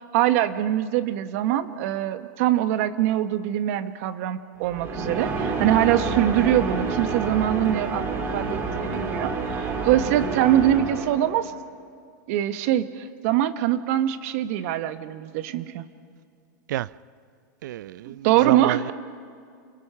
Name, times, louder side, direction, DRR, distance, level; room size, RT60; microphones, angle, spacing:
voice 1, 0.1-11.5 12.3-15.8 18.1-18.9, right 12 dB, 50° right, 1.2 m, -23 dB
sound 1, 4.6-11.5, right 3 dB, 25° right, 2.3 m, -28 dB
voice 2, 17.6-18.9, right 13 dB, 70° right, 0.4 m, -28 dB
28.5 x 20.5 x 5.8 m
supercardioid pair, 155°, 10 cm